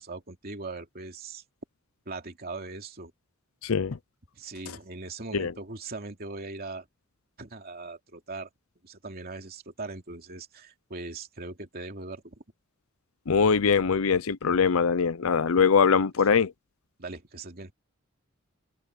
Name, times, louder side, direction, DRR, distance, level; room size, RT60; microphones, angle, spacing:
voice 1, 0.0-1.4 2.1-3.1 4.3-6.9 7.4-8.5 8.8-12.3 16.2-16.3 17.0-17.7, right 3 dB, 45° right, 2.8 m, -40 dB
voice 2, 3.6-4.0 5.3-5.5 13.3-16.5, left 6 dB, 75° left, 0.6 m, -22 dB
open air
head